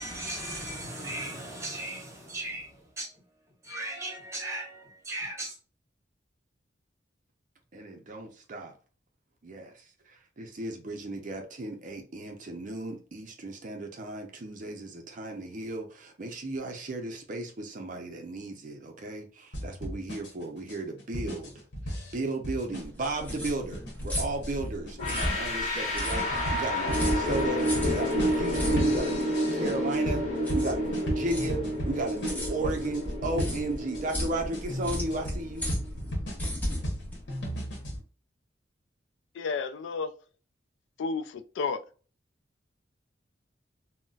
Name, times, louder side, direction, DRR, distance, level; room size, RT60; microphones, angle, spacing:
voice 1, 0.0-3.2 3.6-5.6, right 1 dB, 15° right, 1.2 m, -37 dB
voice 2, 7.7-8.7 9.4-30.3 30.5-35.7, right 2 dB, 45° right, 0.5 m, -35 dB
sound 1, 19.5-34.0 34.5-38.0, equal, 65° left, 0.9 m, -36 dB
sound 2, 22.8-38.0, equal, 10° left, 0.9 m, -35 dB
sound 3, 25.0-35.9, equal, 45° left, 1.1 m, -30 dB
voice 3, 39.3-40.1 41.0-41.8, left 4 dB, 80° left, 0.3 m, -31 dB
3.9 x 2.0 x 2.3 m
head